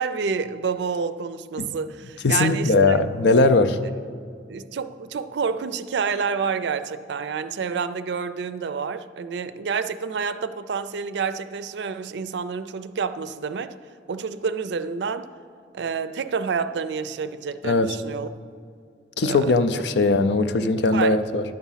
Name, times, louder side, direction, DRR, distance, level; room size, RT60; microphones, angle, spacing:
voice 1, 0.0-3.0 4.5-13.7 14.1-15.3 15.7-18.3 19.2-19.8 20.9-21.2, right 5 dB, 75° right, 0.4 m, -28 dB
voice 2, 2.2-3.8 17.6-18.0 19.2-21.4, left 3 dB, 75° left, 0.5 m, -19 dB
11.0 x 7.1 x 5.6 m
head